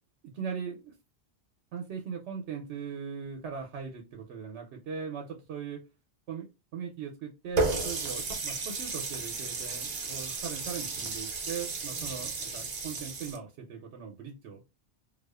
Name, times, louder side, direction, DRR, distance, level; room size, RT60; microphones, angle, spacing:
voice 1, 0.2-0.9 1.7-5.8 6.3-6.5 6.7-14.6, right 6 dB, 80° right, 1 dB, 0.9 m, -39 dB
Water tap faucet, 7.6-13.4, right 3 dB, 50° right, 0.6 m, -33 dB
2.4 x 2.3 x 2.2 m, 0.26 s
omnidirectional pair, 1.1 m